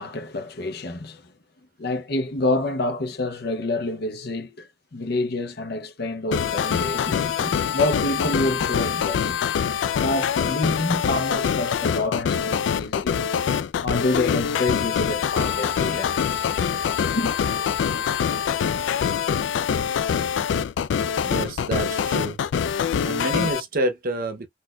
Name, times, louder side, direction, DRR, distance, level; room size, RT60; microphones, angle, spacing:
voice 1, 0.0-1.3 1.8-13.2 13.8-16.5 17.0-17.3, left 2 dB, 60° left, 0.7 m, -28 dB
sound 1, 6.3-23.6, left 7 dB, 85° left, 0.3 m, -24 dB
sound 2, 15.3-19.0, right 1 dB, 10° left, 1.9 m, -42 dB
voice 2, 21.3-22.4 22.8-24.5, right 2 dB, 55° right, 0.7 m, -28 dB
4.2 x 2.5 x 2.2 m
head